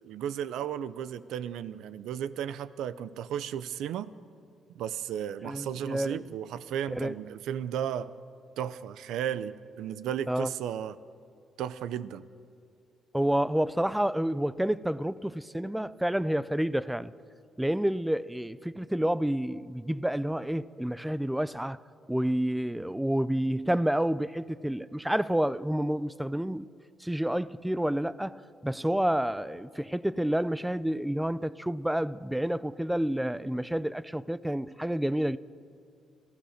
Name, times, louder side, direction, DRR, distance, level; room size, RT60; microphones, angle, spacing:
voice 1, 0.0-4.1 4.7-8.1 8.6-11.0 11.6-12.3, right 9 dB, 85° right, 0.6 m, -34 dB
voice 2, 5.4-6.2 6.9-7.1 10.3-10.5 13.1-17.1 17.6-21.8 22.1-26.7 27.0-35.4, right 1 dB, 5° right, 0.5 m, -29 dB
27.0 x 15.5 x 6.6 m
cardioid pair, 90°, 0 cm